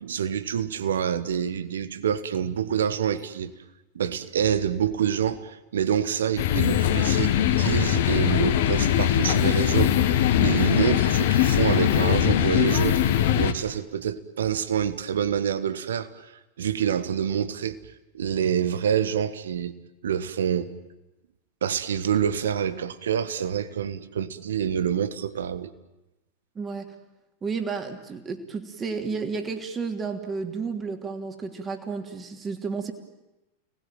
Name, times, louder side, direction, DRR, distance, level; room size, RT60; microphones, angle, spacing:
voice 1, 0.0-3.5 3.9-10.1 10.4-13.0 13.4-16.3 16.6-17.8 18.1-19.7 20.0-20.7 21.6-25.7, right 8 dB, 65° right, 1.5 m, -27 dB
sound 1, 6.4-13.5, left 11 dB, 55° left, 1.6 m, -21 dB
voice 2, 26.5-26.9 27.4-32.9, right 5 dB, 20° right, 3.2 m, -32 dB
29.5 x 20.0 x 9.2 m
figure-of-eight pair, 90°, 0 cm